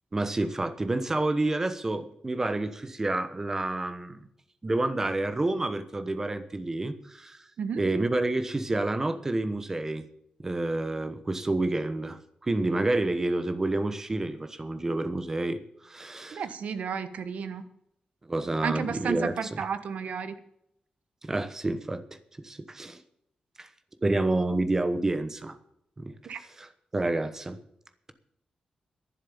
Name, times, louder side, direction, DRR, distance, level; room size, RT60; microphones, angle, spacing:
voice 1, 0.1-4.2 4.6-7.4 7.8-10.1 10.4-16.4 18.3-19.3 21.2-22.0 22.4-23.0 23.6-23.7 24.0-25.5 26.0-26.1 26.6-26.7 26.9-27.6, right 2 dB, 20° right, 10 dB, 1.0 m, -29 dB
voice 2, 7.6-7.9 16.3-17.6 18.6-20.3 26.2-26.4, right 6 dB, 70° right, 11 dB, 1.2 m, -32 dB
11.5 x 10.5 x 7.0 m, 0.75 s
wide cardioid pair, 180°, 2 cm